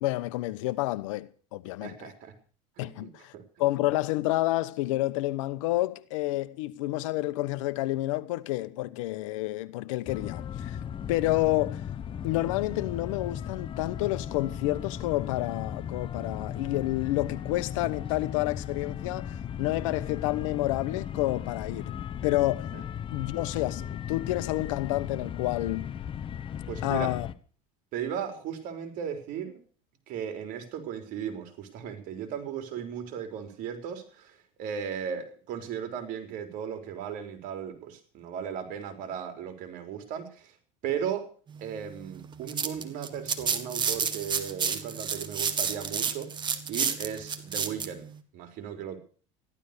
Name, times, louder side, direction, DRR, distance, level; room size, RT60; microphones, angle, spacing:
voice 1, 0.0-2.1 2.8-3.3 3.6-10.8 11.1-11.9 12.2-21.9 22.2-22.7 23.1-25.9 26.8-27.3, left 17 dB, 85° left, 1.1 m, -29 dB
voice 2, 1.8-2.3 2.8-3.4 26.7-27.1 27.9-29.6 30.1-40.5 40.8-41.3 41.6-46.3 46.7-48.1 48.3-49.0, right 8 dB, 60° right, 4.1 m, -36 dB
sound 1, 10.1-27.3, left 9 dB, 35° left, 1.0 m, -36 dB
sound 2, 42.2-47.9, right 6 dB, 30° right, 1.7 m, -30 dB
14.5 x 12.0 x 6.7 m
supercardioid pair, 115°, 16 cm